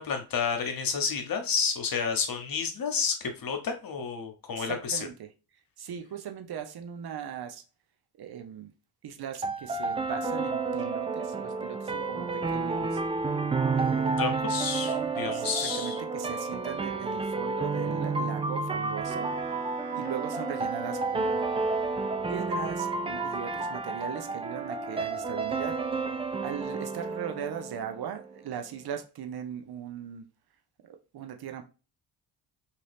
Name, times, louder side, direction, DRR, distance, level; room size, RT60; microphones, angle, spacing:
voice 1, 0.0-5.0 14.2-16.0, left 6 dB, 45° left, 0.9 m, -30 dB
voice 2, 4.6-5.3 5.8-7.6 8.2-8.7 9.0-13.0 13.7-14.2 14.8-19.3 19.9-21.4 22.3-25.8 26.4-30.2 30.8-31.6, right 8 dB, 50° right, 0.8 m, -39 dB
sound 1, 9.4-28.4, right 4 dB, 15° right, 0.3 m, -31 dB
Wind instrument woodwind instrument, 19.0-22.5, right 3 dB, 90° right, 0.7 m, -38 dB
2.8 x 2.5 x 3.4 m
hypercardioid pair, 40°, 48 cm